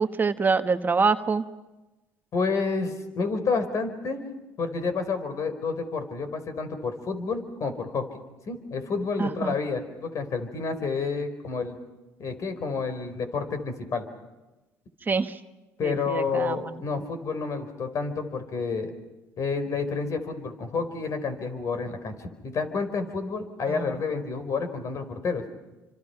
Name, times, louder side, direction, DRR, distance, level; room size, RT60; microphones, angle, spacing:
voice 1, 0.0-1.4 9.2-9.5 15.1-15.4 15.8-16.6 23.7-24.0, right 4 dB, 30° right, 8 dB, 1.2 m, -25 dB
voice 2, 2.3-4.2 4.6-8.1 8.5-11.8 12.2-14.1 15.8-18.9 19.4-25.4, left 4 dB, 50° left, 9 dB, 4.6 m, -29 dB
29.0 x 26.0 x 5.9 m, 1.1 s
supercardioid pair, 80°, 7 cm